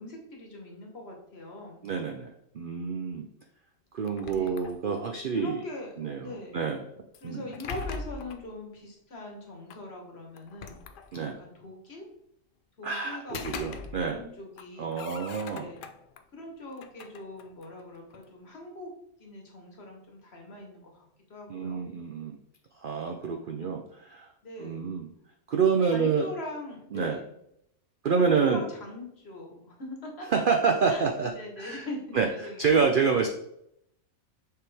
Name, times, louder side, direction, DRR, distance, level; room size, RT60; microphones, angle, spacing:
voice 1, 0.0-1.9 4.3-4.6 5.3-5.9 6.2-6.6 7.2-10.8 11.2-12.1 12.8-13.7 14.0-15.0 15.5-15.9 16.3-18.9 19.2-21.8 23.5-23.8 24.4-25.0 25.5-27.2 28.2-30.4 30.9-31.0 31.3-33.3, left 1 dB, 50° left, 1 dB, 1.5 m, -42 dB
voice 2, 1.8-3.3 3.9-5.6 6.0-6.8 7.2-7.4 11.1-11.4 12.8-14.2 14.8-15.7 21.5-22.4 22.8-24.3 24.6-25.1 25.5-26.3 26.9-27.2 28.0-28.6 30.3-31.9 32.1-32.3 32.6-33.3, right 5 dB, 60° right, 4 dB, 0.5 m, -27 dB
sound 1, 4.0-5.2 7.1-8.5 9.7-9.8 10.4-11.5 13.0-14.3 14.6-16.2 16.7-18.3, left 6 dB, 75° left, 0.4 m, -42 dB
6.8 x 4.8 x 3.4 m, 0.76 s
omnidirectional pair, 1.5 m